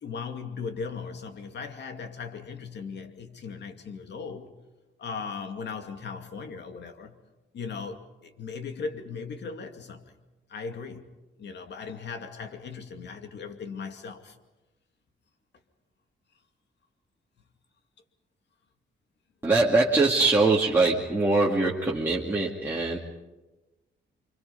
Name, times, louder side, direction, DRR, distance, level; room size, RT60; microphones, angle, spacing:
voice 1, 0.0-4.5 5.0-7.2 7.5-10.1 10.5-11.1 11.4-14.4, left 5 dB, 60° left, 2.5 m, -38 dB
voice 2, 19.4-23.0, right 3 dB, 10° right, 2.5 m, -23 dB
29.5 x 26.0 x 5.5 m
wide cardioid pair, 150°, 20 cm